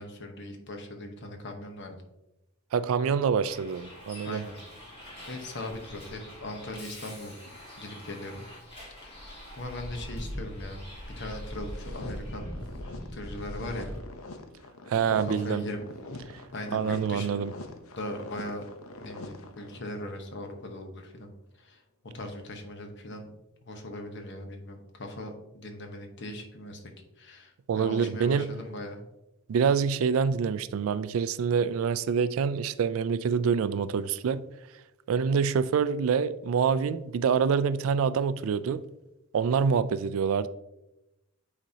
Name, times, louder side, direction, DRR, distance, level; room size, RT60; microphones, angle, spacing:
voice 1, 0.0-2.0 3.0-3.1 4.2-4.5 5.3-8.4 9.0-9.3 9.6-10.8 11.2-12.6 13.1-13.9 15.1-15.8 16.5-17.5 18.0-18.6 19.0-21.8 22.1-23.3 23.6-29.0, left 1 dB, 55° left, 1.0 m, -39 dB
voice 2, 2.7-4.4 14.9-15.6 16.7-17.5 27.7-28.5 29.5-34.5 35.1-38.8 39.3-40.5, right 6 dB, 70° right, 0.3 m, -26 dB
Bus, 3.4-14.0, equal, 25° left, 1.7 m, -42 dB
sound 1, 11.5-20.1, left 2 dB, 75° left, 0.7 m, -45 dB
9.0 x 4.1 x 2.8 m
head